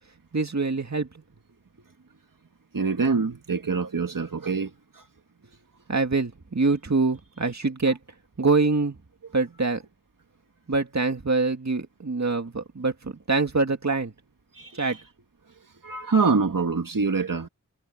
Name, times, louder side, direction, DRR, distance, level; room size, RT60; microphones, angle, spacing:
voice 1, 0.3-1.1 5.9-8.0 8.4-9.0 9.3-9.8 10.7-14.1 14.7-15.0, right 3 dB, 55° right, 2.2 m, -24 dB
voice 2, 2.7-5.0 14.5-15.0 15.8-17.5, right 4 dB, 85° right, 1.9 m, -25 dB
wide cardioid pair, 45°, 32 cm